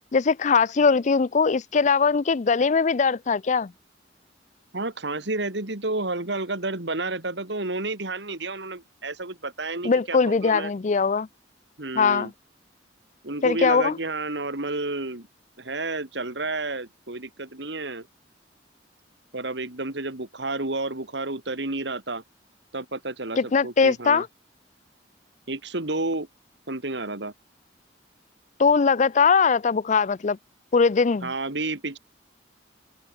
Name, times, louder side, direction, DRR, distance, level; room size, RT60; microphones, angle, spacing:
voice 1, 0.1-3.7 9.8-11.3 12.0-12.3 13.4-14.0 23.4-24.3 28.6-30.4 30.7-31.3, left 5 dB, 40° left, 0.4 m, -21 dB
voice 2, 4.7-10.7 11.8-12.3 13.2-15.3 15.6-18.1 19.3-22.2 22.7-24.2 25.5-26.3 26.7-27.3 31.2-32.0, right 2 dB, 65° right, 2.7 m, -31 dB
open air
head